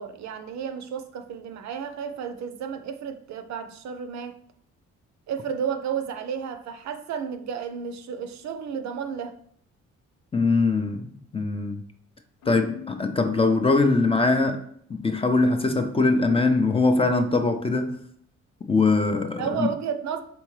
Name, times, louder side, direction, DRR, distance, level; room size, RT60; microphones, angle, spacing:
voice 1, 0.0-4.4 5.3-9.3 19.4-20.2, right 7 dB, 65° right, 0.5 m, -32 dB
voice 2, 10.3-11.8 12.5-14.6 14.9-17.9 18.6-19.7, left 3 dB, 20° left, 0.4 m, -22 dB
Keyboard (musical), 12.4-14.2, left 11 dB, 75° left, 0.7 m, -43 dB
3.8 x 3.5 x 3.1 m
cardioid pair, 90°, 30 cm